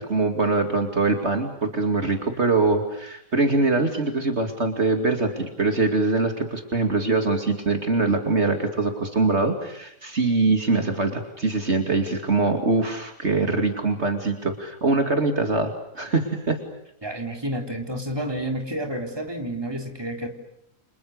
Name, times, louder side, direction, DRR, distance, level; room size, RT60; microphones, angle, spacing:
voice 1, 0.0-16.6, right 3 dB, 55° right, 5 dB, 2.8 m, -23 dB
voice 2, 17.0-20.3, right 1 dB, 20° right, 3 dB, 3.9 m, -30 dB
29.5 x 27.0 x 6.6 m, 0.78 s
omnidirectional pair, 1.4 m